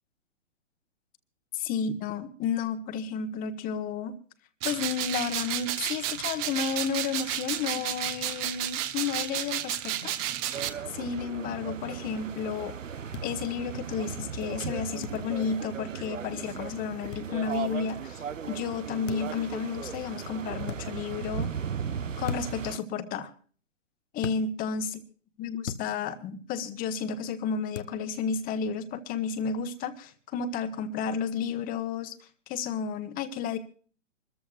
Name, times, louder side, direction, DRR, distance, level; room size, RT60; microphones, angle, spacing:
voice 1, 1.5-4.2 4.6-10.1 10.9-12.7 13.2-21.5 22.2-23.3 24.1-24.9 25.4-32.2 32.5-33.6, left 6 dB, 20° left, 10 dB, 1.4 m, -32 dB
sound 1, 4.6-10.7, right 12 dB, 30° right, 1.1 m, -32 dB
sound 2, 10.5-22.8, right 7 dB, 85° right, 0.8 m, -37 dB
sound 3, 13.1-13.3 15.0-15.2 17.1-17.3 19.1-19.4 20.6-20.8 22.2-22.7 24.2-24.4 25.6-25.9 27.7-28.0, left 6 dB, 75° left, 1.3 m, -37 dB
26.5 x 14.0 x 2.5 m, 0.42 s
figure-of-eight pair, 120°, 37 cm